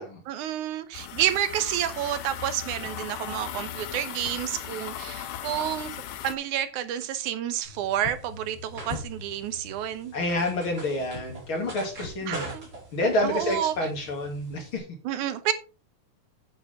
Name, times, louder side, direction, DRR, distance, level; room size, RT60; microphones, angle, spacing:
voice 1, 0.3-5.9 6.2-10.1 12.3-12.7 13.2-13.7 15.0-15.5, right 11 dB, 80° right, 2.3 m, -29 dB
sound 1, 0.9-6.3, left 10 dB, 90° left, 2.4 m, -37 dB
sound 2, 7.6-14.8, equal, 30° right, 4.9 m, -41 dB
voice 2, 10.1-12.6 12.9-14.8, left 1 dB, 45° left, 3.1 m, -28 dB
9.4 x 9.1 x 3.5 m
omnidirectional pair, 3.5 m